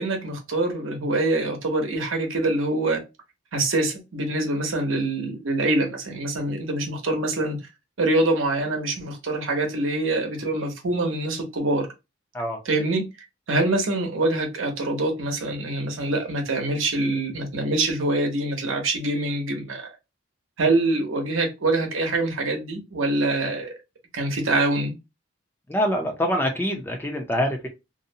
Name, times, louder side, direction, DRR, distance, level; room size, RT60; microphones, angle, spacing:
voice 1, 0.0-3.0 3.5-7.6 8.0-11.9 12.7-13.1 13.5-19.9 20.6-23.8 24.1-24.9, right 2 dB, 80° right, 0.8 m, -25 dB
voice 2, 25.7-27.7, equal, 10° left, 0.4 m, -25 dB
2.6 x 2.0 x 2.7 m
head